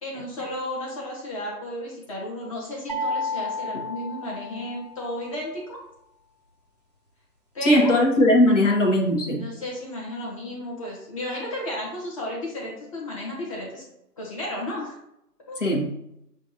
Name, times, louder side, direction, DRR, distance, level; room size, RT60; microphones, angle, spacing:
voice 1, 0.0-5.8 7.5-7.9 9.3-13.8 14.2-15.0 15.5-15.6, left 1 dB, 20° left, -3 dB, 1.1 m, -33 dB
sound 1, 2.9-5.0, left 2 dB, 25° right, 0.6 m, -31 dB
voice 2, 7.6-9.5 15.6-15.9, left 1 dB, 50° left, 1 dB, 1.2 m, -19 dB
7.4 x 2.5 x 2.8 m, 0.80 s
figure-of-eight pair, 145°, 49 cm